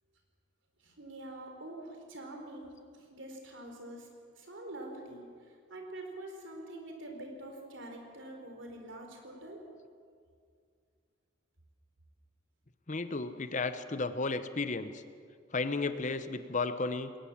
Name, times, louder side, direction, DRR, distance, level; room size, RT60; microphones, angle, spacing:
voice 1, 0.8-9.6, right 1 dB, 65° right, 3 dB, 3.9 m, -46 dB
voice 2, 12.9-15.0 15.5-17.1, left 3 dB, 35° left, 11 dB, 0.8 m, -33 dB
21.0 x 18.5 x 7.3 m, 2.2 s
head